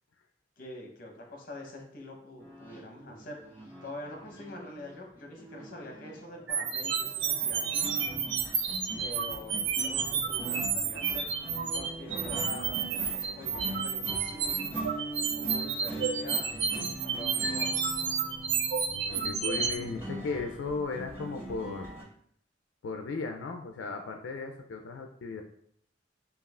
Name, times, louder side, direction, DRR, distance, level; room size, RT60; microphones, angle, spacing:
voice 1, 0.6-3.5 3.8-7.9 9.0-11.3 11.7-16.7 17.0-17.8, left 1 dB, 50° left, 1 dB, 0.9 m, -45 dB
sound 1, 2.4-22.0, right 1 dB, 15° right, 1.4 m, -42 dB
sound 2, 6.5-19.7, right 6 dB, 75° right, 0.5 m, -31 dB
voice 2, 18.9-21.9 22.8-25.4, left 4 dB, 90° left, 4 dB, 0.4 m, -36 dB
5.3 x 2.4 x 2.4 m, 0.65 s
head